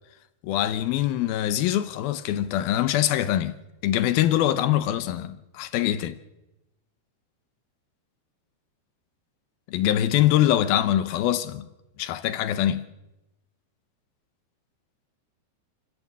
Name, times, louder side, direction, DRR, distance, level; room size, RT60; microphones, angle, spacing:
voice 1, 0.4-3.6 3.8-6.2 9.7-11.7 12.0-12.9, left 12 dB, 75° left, 2.5 m, -23 dB
28.0 x 14.5 x 7.4 m
omnidirectional pair, 4.6 m